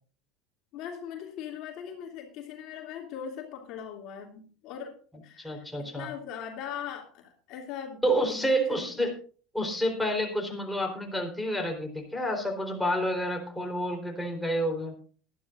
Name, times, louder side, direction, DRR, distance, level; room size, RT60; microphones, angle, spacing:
voice 1, 0.7-4.9 5.2-5.7 6.0-8.0 8.3-8.8, left 8 dB, 50° left, 2 dB, 2.7 m, -40 dB
voice 2, 5.4-6.1 8.0-9.1 9.5-14.9, equal, 5° left, 1 dB, 4.0 m, -29 dB
20.0 x 12.0 x 2.6 m, 0.40 s
figure-of-eight pair, 75°, 0 cm